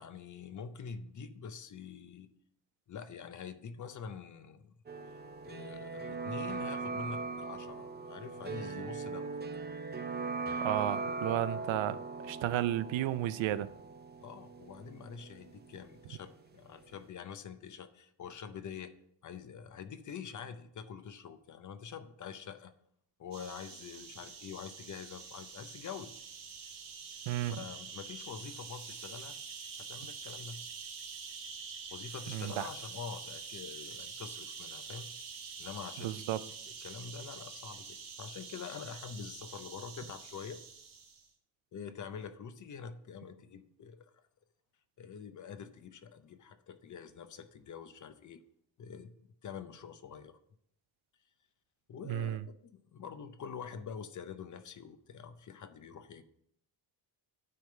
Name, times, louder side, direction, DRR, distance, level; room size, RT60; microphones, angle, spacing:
voice 1, 0.0-2.3 2.9-4.7 5.5-9.4 12.2-12.3 14.2-18.9 19.2-22.7 23.2-26.1 27.5-29.4 29.8-30.6 31.9-35.1 35.6-36.2 36.8-40.6 41.7-44.1 45.0-48.4 48.8-49.1 49.4-50.4 51.9-56.2, left 6 dB, 40° left, 0.6 m, -46 dB
sound 1, 4.9-16.6 16.8-16.9, right 4 dB, 25° right, 0.5 m, -40 dB
voice 2, 10.6-12.0 12.2-13.7 27.3-27.6 32.3-32.7 36.0-36.4 52.1-52.4, right 13 dB, 90° right, 0.6 m, -33 dB
sound 2, 23.3-41.3, right 5 dB, 50° right, 1.3 m, -46 dB
9.4 x 3.4 x 6.7 m
wide cardioid pair, 170°, 45 cm